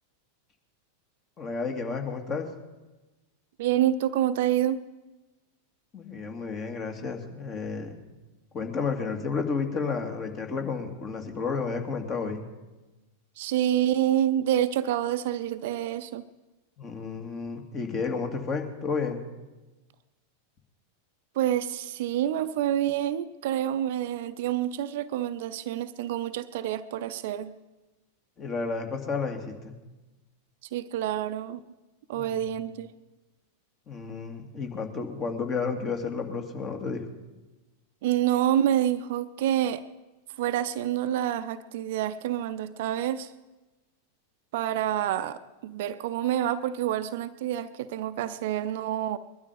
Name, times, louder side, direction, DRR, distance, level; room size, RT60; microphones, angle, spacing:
voice 1, 1.4-2.5 5.9-7.9 8.5-12.4 16.8-19.2 28.4-29.8 32.1-32.4 33.9-37.0, left 5 dB, 30° left, 4 dB, 2.3 m, -31 dB
voice 2, 3.6-4.8 13.4-16.2 21.3-27.6 30.7-31.6 32.1-32.9 38.0-39.8 40.4-43.3 44.5-49.2, right 11 dB, 50° right, 13 dB, 0.6 m, -27 dB
21.5 x 12.0 x 5.2 m, 1.1 s
figure-of-eight pair, 90°, 0 cm